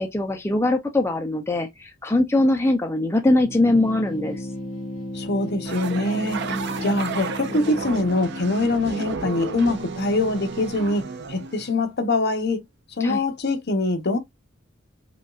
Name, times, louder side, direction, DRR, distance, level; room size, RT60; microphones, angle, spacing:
voice 1, 0.0-4.4 6.5-7.0 13.0-13.2, left 2 dB, 15° left, 0.5 m, -22 dB
sound 1, 3.4-10.0, left 1 dB, 75° left, 1.7 m, -35 dB
voice 2, 5.1-6.4 6.8-12.6 13.0-14.2, left 2 dB, 55° left, 0.9 m, -23 dB
sound 2, 5.6-11.8, right 4 dB, 60° right, 0.5 m, -33 dB
5.0 x 2.3 x 2.4 m
head